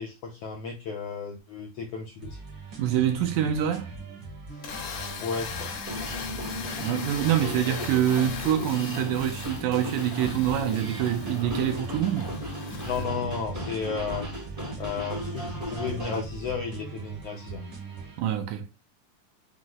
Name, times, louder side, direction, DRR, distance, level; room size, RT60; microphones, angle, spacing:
voice 1, 0.0-2.4 5.2-5.7 12.8-14.3 14.8-17.6, left 5 dB, 85° left, 1.4 m, -33 dB
sound 1, 2.2-18.2, right 5 dB, 55° right, 1.2 m, -41 dB
voice 2, 2.8-3.9 6.8-12.3 18.2-18.7, right 10 dB, 80° right, 2.0 m, -26 dB
sound 2, 4.5-13.0, left 6 dB, 70° left, 1.7 m, -39 dB
sound 3, 5.8-16.2, left 1 dB, 40° right, 0.8 m, -37 dB
6.0 x 2.0 x 3.8 m
omnidirectional pair, 3.6 m